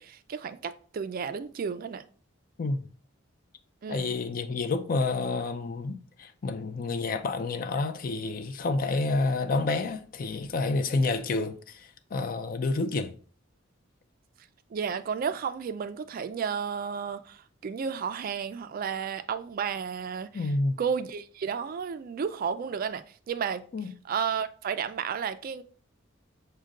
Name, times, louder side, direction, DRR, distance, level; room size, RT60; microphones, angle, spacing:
voice 1, 0.0-2.0 3.8-4.1 14.7-20.5 20.8-25.6, right 6 dB, 45° right, 0.3 m, -32 dB
voice 2, 3.9-13.1 20.3-20.8 23.7-23.9, left 3 dB, 45° left, 0.4 m, -29 dB
6.4 x 2.2 x 3.6 m
head